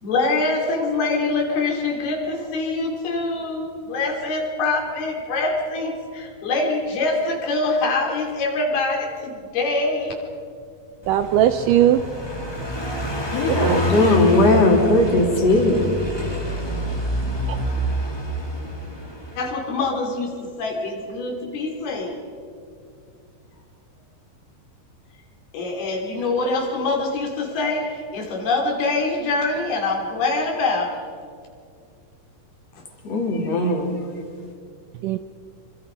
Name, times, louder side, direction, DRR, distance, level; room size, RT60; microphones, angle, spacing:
voice 1, 0.0-10.1 19.4-22.2 25.5-31.0, left 3 dB, 85° left, 5.1 m, -24 dB
Car passing by, 11.0-19.5, equal, 10° left, 2.0 m, -27 dB
voice 2, 11.1-12.0 13.5-13.9 35.0-35.2, right 11 dB, 80° right, 1.9 m, -19 dB
voice 3, 13.3-15.9 33.0-34.0, left 2 dB, 45° left, 4.1 m, -18 dB
25.5 x 25.5 x 5.3 m
omnidirectional pair, 4.3 m